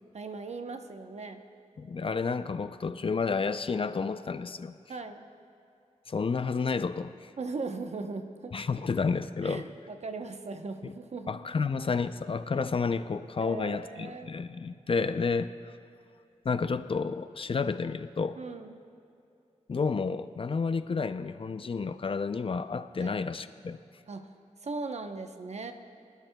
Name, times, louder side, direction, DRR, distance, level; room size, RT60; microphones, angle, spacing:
voice 1, 0.1-1.4 4.9-5.2 7.4-8.5 9.4-11.4 13.4-14.3 18.4-18.8 23.0-23.2 24.1-24.3 24.6-25.7, right 3 dB, 60° right, 6 dB, 0.8 m, -38 dB
voice 2, 1.8-4.8 6.1-7.3 8.5-9.6 10.8-10.9 11.3-15.5 16.4-18.4 19.7-23.8, left 5 dB, 45° left, 12 dB, 0.4 m, -30 dB
25.5 x 12.0 x 2.2 m, 2.6 s
wide cardioid pair, 80°, 13 cm